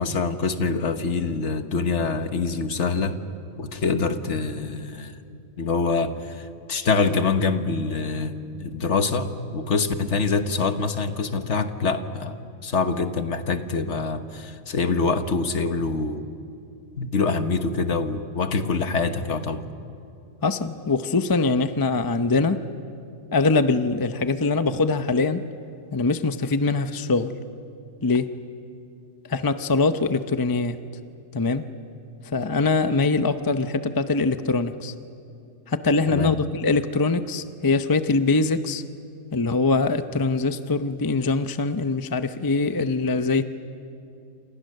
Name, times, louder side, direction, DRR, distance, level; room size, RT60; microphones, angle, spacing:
voice 1, 0.0-3.1 3.6-5.2 5.6-12.4 12.6-16.3 17.0-19.6 36.1-36.3, left 4 dB, 60° left, 8 dB, 1.5 m, -25 dB
voice 2, 20.4-22.6 23.3-25.4 25.9-27.3 28.0-28.3 29.3-30.8 31.3-31.7 32.3-34.9 35.7-38.8 39.3-43.4, left 3 dB, 25° left, 10 dB, 0.5 m, -23 dB
28.5 x 27.5 x 6.6 m, 2.6 s
omnidirectional pair, 1.4 m